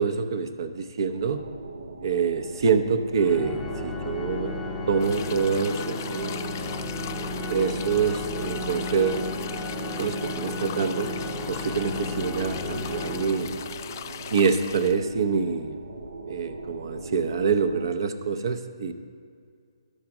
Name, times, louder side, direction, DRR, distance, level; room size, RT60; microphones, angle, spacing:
voice 1, 0.0-1.4 2.0-4.6 4.9-6.4 7.5-9.3 10.0-11.1 11.5-13.5 14.3-15.8 16.3-18.9, right 5 dB, 50° right, 10 dB, 0.7 m, -26 dB
sound 1, 1.2-17.9, right 2 dB, 85° right, 1.4 m, -40 dB
Organ, 3.1-13.9, left 2 dB, 5° left, 0.7 m, -33 dB
sound 2, 5.0-15.0, left 9 dB, 35° left, 0.3 m, -40 dB
11.5 x 6.5 x 6.0 m, 2.2 s
hypercardioid pair, 165°, 3 cm